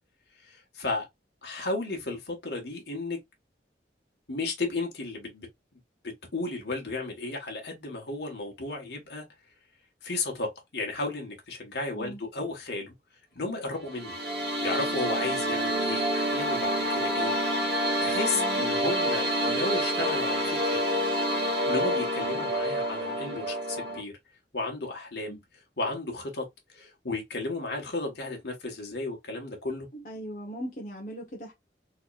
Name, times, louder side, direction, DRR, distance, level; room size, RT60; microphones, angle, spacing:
voice 1, 0.4-1.1 1.4-3.2 4.3-5.5 6.3-9.2 10.0-12.9 13.3-14.1 14.6-17.3 17.7-20.8 21.6-24.1 24.5-25.4 25.8-26.4 26.7-29.9, left 2 dB, 75° left, 1.5 m, -34 dB
sound 1, 13.8-24.0, equal, 80° right, 1.6 m, -28 dB
voice 2, 18.3-18.6 25.3-25.4 29.9-31.5, equal, 45° left, 1.0 m, -39 dB
4.0 x 3.1 x 2.4 m
head